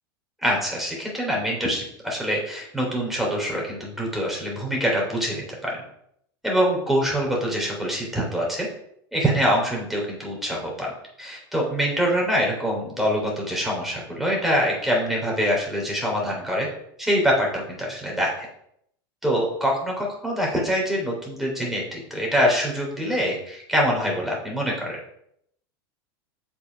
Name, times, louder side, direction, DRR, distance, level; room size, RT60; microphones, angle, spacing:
voice 1, 0.4-5.7 6.4-8.7 9.1-10.9 11.2-16.7 17.0-18.5 19.2-19.8 20.2-25.0, equal, ahead, -2 dB, 3.7 m, -24 dB
6.7 x 6.0 x 5.3 m, 0.72 s
hypercardioid pair, 105°, 13 cm